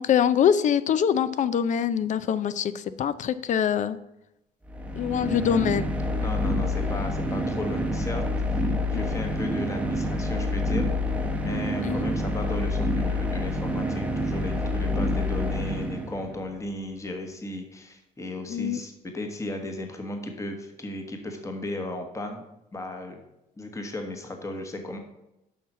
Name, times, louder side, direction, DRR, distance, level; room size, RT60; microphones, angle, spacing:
voice 1, 0.0-4.0 5.0-5.8 8.9-9.0 11.8-12.0 18.5-18.8, left 8 dB, 45° left, 15 dB, 0.5 m, -24 dB
sound 1, 4.7-16.5, left 1 dB, 5° right, 0.9 m, -27 dB
voice 2, 6.2-8.2 8.5-10.9 11.4-22.4 22.7-23.2 23.6-25.0, left 1 dB, 20° left, 4 dB, 1.2 m, -35 dB
7.3 x 5.7 x 5.9 m, 0.90 s
cardioid pair, 110°, 17 cm